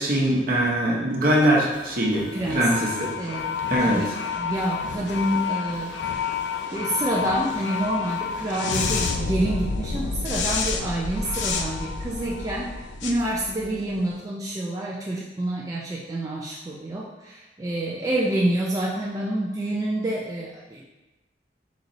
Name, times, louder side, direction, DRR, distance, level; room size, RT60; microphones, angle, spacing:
voice 1, 0.0-3.1 3.7-4.1, right 1 dB, 55° right, -3 dB, 0.8 m, -22 dB
sound 1, 1.7-14.1, left 5 dB, 80° left, 0.4 m, -29 dB
voice 2, 2.3-2.8 3.2-6.2 6.7-12.7 13.0-20.9, right 1 dB, 20° right, -5 dB, 0.3 m, -28 dB
4.0 x 3.0 x 2.6 m, 1.0 s
head